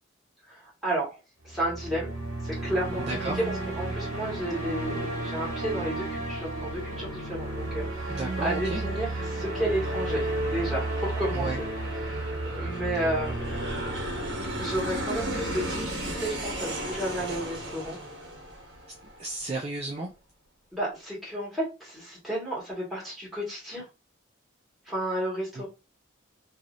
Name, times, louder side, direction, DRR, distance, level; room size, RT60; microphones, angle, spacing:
voice 1, 0.5-1.2 1.4-2.1 2.4-13.6 14.6-18.0 20.7-23.9 24.8-25.7, right 1 dB, ahead, 1.7 m, -32 dB
sound 1, 1.5-15.7, right 2 dB, 80° right, 1.3 m, -33 dB
voice 2, 3.1-3.4 8.1-8.8 11.3-11.6 19.2-20.1, right 2 dB, 30° right, 0.4 m, -33 dB
Aircraft, 6.5-19.4, right 1 dB, 55° right, 1.1 m, -37 dB
3.0 x 2.7 x 2.5 m
head